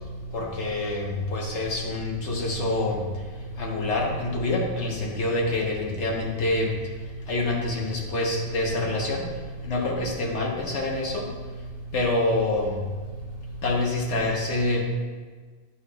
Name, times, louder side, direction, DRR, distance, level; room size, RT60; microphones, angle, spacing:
voice 1, 0.3-3.0 3.6-6.7 7.3-9.2 9.7-11.2 11.9-12.7 13.6-14.8, left 2 dB, 55° left, -2 dB, 1.3 m, -26 dB
9.8 x 4.6 x 2.3 m, 1.5 s
omnidirectional pair, 1.5 m